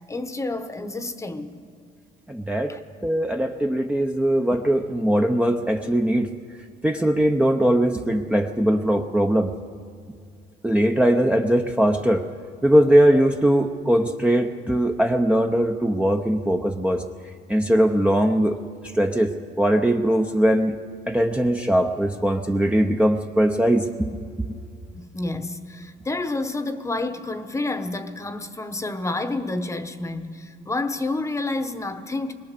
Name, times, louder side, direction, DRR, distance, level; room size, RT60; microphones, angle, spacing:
voice 1, 0.1-1.5 2.7-2.8 24.9-32.3, left 2 dB, 15° left, 1.0 m, -29 dB
voice 2, 2.3-2.8 3.0-6.3 6.8-9.5 10.6-12.2 12.6-17.0 17.5-18.6 18.9-20.8 21.1-24.1 24.4-24.5, right 1 dB, 5° right, 0.8 m, -20 dB
22.0 x 18.5 x 6.7 m
cardioid pair, 110°, 17 cm